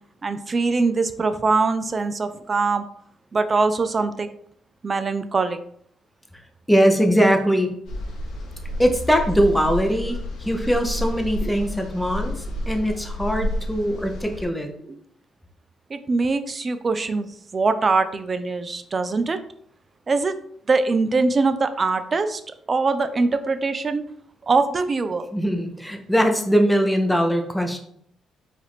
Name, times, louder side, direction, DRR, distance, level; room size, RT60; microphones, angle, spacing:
voice 1, 0.2-2.8 3.3-4.3 4.8-5.6 11.4-11.5 14.9-15.0 15.9-17.3 17.5-19.4 20.1-20.4 20.7-22.4 22.7-24.0 24.4-25.3, right 3 dB, 35° right, 11 dB, 0.4 m, -22 dB
voice 2, 6.7-7.7 8.8-12.3 12.7-14.7 25.3-27.8, equal, 5° left, 5 dB, 0.7 m, -21 dB
sound 1, 7.8-14.4, left 1 dB, 85° left, 1.1 m, -30 dB
4.8 x 2.6 x 3.5 m, 0.66 s
cardioid pair, 90°, 0 cm